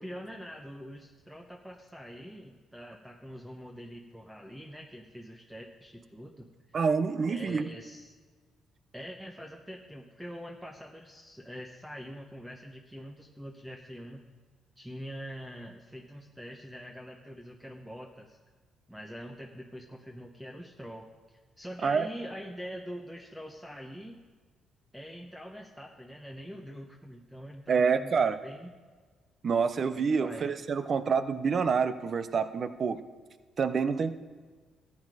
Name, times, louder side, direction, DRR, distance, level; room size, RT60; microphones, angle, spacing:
voice 1, 0.0-6.8 7.3-8.1 8.9-14.2 14.8-18.4 18.9-24.2 24.9-28.7 29.9-30.5, equal, 5° right, 2 dB, 1.0 m, -44 dB
voice 2, 6.7-7.7 21.8-22.1 27.7-28.4 29.4-33.0 33.6-34.1, right 5 dB, 45° right, 12 dB, 0.7 m, -27 dB
13.5 x 8.4 x 4.9 m, 1.5 s
cardioid pair, 90°, 0 cm